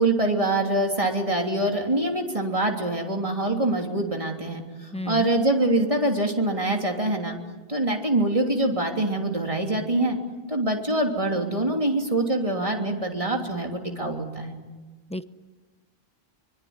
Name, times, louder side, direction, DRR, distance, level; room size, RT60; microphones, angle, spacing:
voice 1, 0.0-7.4 7.7-10.2 10.5-14.5, right 1 dB, 35° right, 2 dB, 3.2 m, -24 dB
voice 2, 4.9-5.3 15.1-15.2, left 1 dB, 5° left, 11 dB, 0.8 m, -32 dB
24.5 x 23.0 x 9.6 m, 1.3 s
omnidirectional pair, 1.0 m